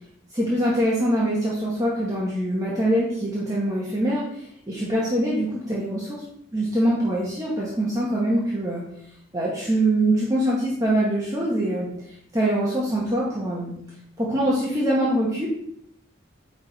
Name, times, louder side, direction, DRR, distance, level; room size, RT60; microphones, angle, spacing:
voice 1, 0.3-6.2 6.5-8.8 9.3-11.9 12.3-13.8 14.2-15.5, right 1 dB, 15° right, -6 dB, 1.2 m, -24 dB
8.9 x 3.6 x 4.0 m, 0.72 s
head